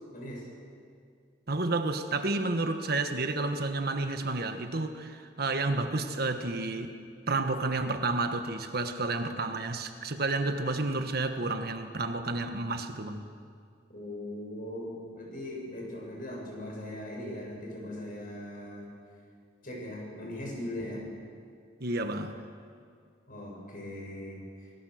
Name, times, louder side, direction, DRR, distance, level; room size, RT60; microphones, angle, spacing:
voice 1, 0.1-0.5 13.9-18.9 19.6-21.1 23.3-24.7, left 1 dB, 50° left, -2 dB, 7.5 m, -39 dB
voice 2, 1.5-7.0 7.3-13.3 21.8-22.4, right 2 dB, 55° right, 7 dB, 1.4 m, -31 dB
27.5 x 19.5 x 6.5 m, 2.2 s
head